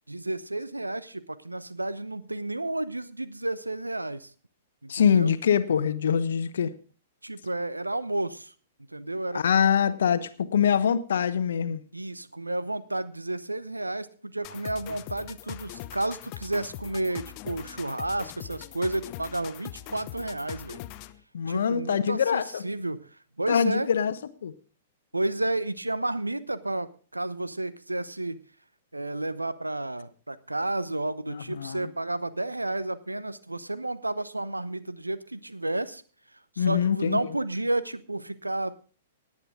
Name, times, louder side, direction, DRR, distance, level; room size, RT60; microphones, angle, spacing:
voice 1, 0.1-4.3 4.8-5.3 7.2-8.5 8.9-9.9 11.9-20.8 21.5-23.1 23.4-23.9 25.1-28.4 28.9-36.0 36.5-38.8, right 2 dB, 90° right, 15 dB, 0.8 m, -31 dB
voice 2, 4.9-6.7 9.3-11.8 21.3-22.6 23.5-24.1 24.4-24.5 31.3-31.9 36.6-37.2, left 7 dB, 65° left, 13 dB, 1.0 m, -24 dB
sound 1, 14.4-21.2, left 14 dB, 40° left, 0.7 m, -42 dB
18.0 x 8.9 x 3.7 m, 0.41 s
figure-of-eight pair, 110°, 0 cm